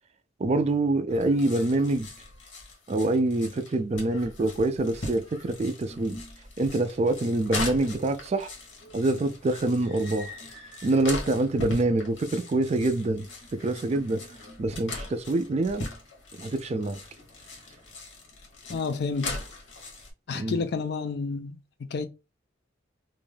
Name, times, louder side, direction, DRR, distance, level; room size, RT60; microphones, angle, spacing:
voice 1, 0.4-2.1 2.9-6.2 6.6-8.5 8.9-10.3 10.8-14.2 14.6-15.9 16.4-17.0 20.3-20.6, right 2 dB, 35° right, 0.3 m, -26 dB
sound 1, 1.1-20.1, left 2 dB, 85° left, 1.0 m, -40 dB
voice 2, 18.7-19.4 20.3-22.1, left 4 dB, 60° left, 0.4 m, -30 dB
2.5 x 2.2 x 3.2 m
head